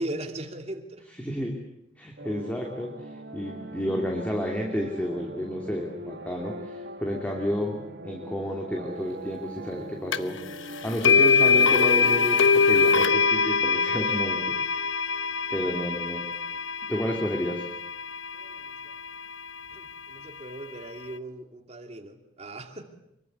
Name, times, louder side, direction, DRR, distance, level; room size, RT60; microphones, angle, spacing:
voice 1, 0.0-1.1 18.3-19.0 19.7-22.8, right 1 dB, 35° right, 5 dB, 2.7 m, -38 dB
voice 2, 1.2-1.5 2.0-2.9 3.3-10.4 10.8-14.9 15.5-16.2 16.9-17.6, equal, 10° left, 0 dB, 3.0 m, -31 dB
sound 1, 2.2-14.9, right 1 dB, 60° right, 2.1 m, -42 dB
sound 2, 10.1-10.2 11.0-19.1, left 5 dB, 85° left, 1.0 m, -23 dB
25.5 x 23.5 x 8.2 m, 0.81 s
head